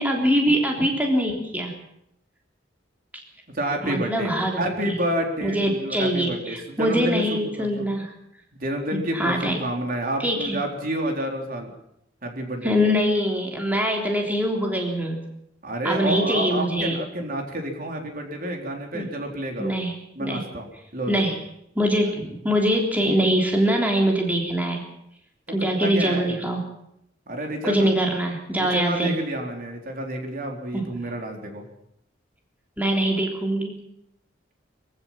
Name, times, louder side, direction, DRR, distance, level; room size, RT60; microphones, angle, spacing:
voice 1, 0.0-1.7 3.8-4.7 5.4-8.1 8.9-9.6 10.2-10.6 12.6-15.2 15.8-17.0 18.9-19.1 19.6-19.9 20.2-20.4 21.1-21.4 21.7-24.8 25.5-26.6 27.6-29.1 30.7-30.9 32.8-33.8, equal, 10° right, 0 dB, 3.4 m, -23 dB
voice 2, 3.5-4.3 4.6-7.9 8.5-11.7 12.2-12.7 15.6-19.7 20.2-20.7 20.9-21.3 25.5-26.4 27.3-27.9 28.6-31.6, right 1 dB, 50° right, 2 dB, 4.0 m, -29 dB
24.0 x 16.0 x 7.6 m, 0.78 s
head